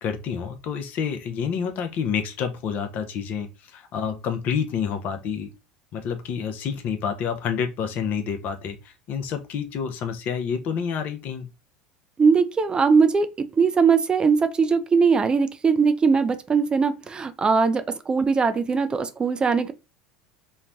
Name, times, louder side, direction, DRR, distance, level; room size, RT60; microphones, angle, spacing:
voice 1, 0.0-5.5 5.9-11.5, left 7 dB, 50° left, 0.5 m, -28 dB
voice 2, 12.2-19.7, right 5 dB, 25° right, 0.3 m, -20 dB
3.1 x 2.1 x 2.5 m
hypercardioid pair, 80°, 4 cm